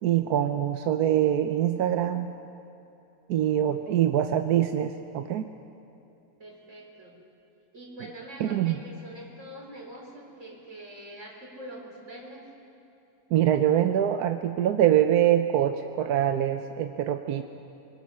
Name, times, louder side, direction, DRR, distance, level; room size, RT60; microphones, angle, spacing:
voice 1, 0.0-2.3 3.3-5.4 8.4-8.8 13.3-17.4, right 11 dB, 90° right, 7 dB, 1.3 m, -24 dB
voice 2, 3.9-4.2 6.4-7.2 7.7-12.5, right 1 dB, 50° right, -1 dB, 4.5 m, -44 dB
25.5 x 22.5 x 5.6 m, 2.8 s
omnidirectional pair, 1.6 m